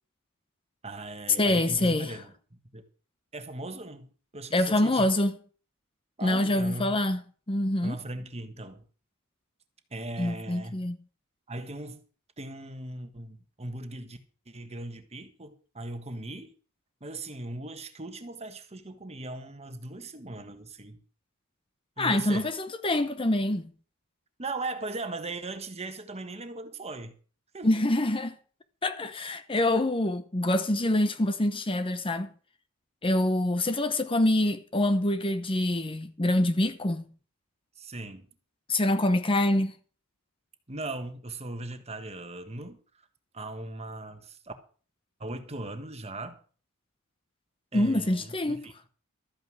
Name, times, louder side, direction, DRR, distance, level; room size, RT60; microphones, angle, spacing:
voice 1, 0.8-2.8 3.3-5.1 6.2-6.9 7.8-8.8 9.9-10.8 11.5-12.0 12.4-14.2 14.5-16.5 17.0-21.0 22.0-22.5 24.4-27.2 27.5-27.7 37.8-38.3 40.7-42.8 43.3-44.5 45.2-46.4 47.7-48.7, right 2 dB, 30° right, 1.4 m, -38 dB
voice 2, 1.4-2.2 4.5-5.4 6.2-7.2 7.5-8.0 10.2-11.0 22.0-23.7 27.6-28.3 28.8-32.3 33.0-37.0 38.7-39.7 47.7-48.6, left 1 dB, 25° left, 0.8 m, -25 dB
13.5 x 9.2 x 6.2 m
head